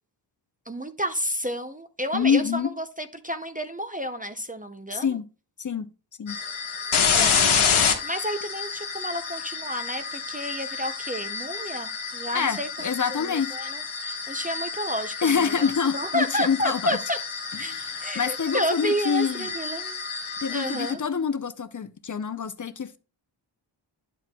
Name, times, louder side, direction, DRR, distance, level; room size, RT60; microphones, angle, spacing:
voice 1, 0.7-5.2 7.1-12.7 13.1-17.2 17.6-17.7 18.0-20.0 20.5-21.0, equal, 20° right, 0.5 m, -31 dB
voice 2, 2.1-2.7 4.9-5.2 5.6-5.9 6.2-6.4 12.3-13.6 15.2-17.0 17.5-19.5 20.4-23.0, left 6 dB, 40° left, 0.5 m, -26 dB
sound 1, 6.3-20.9, left 6 dB, 90° left, 1.5 m, -29 dB
10.5 x 7.5 x 2.2 m
wide cardioid pair, 160°, 47 cm